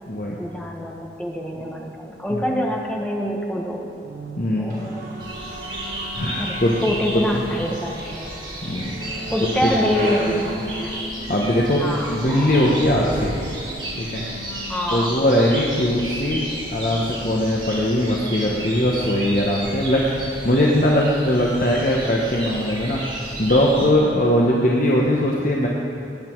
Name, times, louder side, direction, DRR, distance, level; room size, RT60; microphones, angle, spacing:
voice 1, 0.4-3.9 4.6-5.0 6.4-8.3 9.3-11.0 11.8-12.2 14.7-15.1, equal, 5° left, -1 dB, 1.3 m, -25 dB
sound 1, 4.0-16.5, equal, 80° right, 0.9 m, -37 dB
voice 2, 4.4-4.8 6.2-6.8 7.3-7.4 8.6-8.9 9.6-9.7 10.0-10.6 11.3-13.3 14.0-14.2 14.9-25.7, left 1 dB, 45° left, -3 dB, 1.1 m, -20 dB
sound 2, 4.7-10.8, right 1 dB, 55° right, 3.8 m, -38 dB
sound 3, 5.2-23.9, right 1 dB, 25° right, 2.8 m, -33 dB
18.5 x 9.4 x 4.6 m, 2.7 s
head